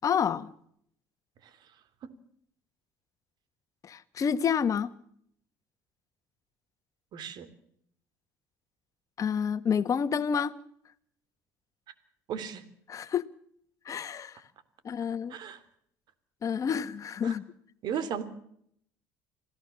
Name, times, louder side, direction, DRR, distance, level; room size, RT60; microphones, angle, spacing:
voice 1, 0.0-0.5 3.8-4.9 9.2-10.6 12.9-13.2 13.8-14.4 14.8-15.4 16.4-17.4, left 7 dB, 40° left, 1.6 m, -29 dB
voice 2, 7.1-7.5 12.3-12.6 15.3-15.6 17.2-17.3 17.8-18.2, right 8 dB, 60° right, 3.2 m, -35 dB
26.5 x 16.5 x 7.1 m
supercardioid pair, 85°, 8 cm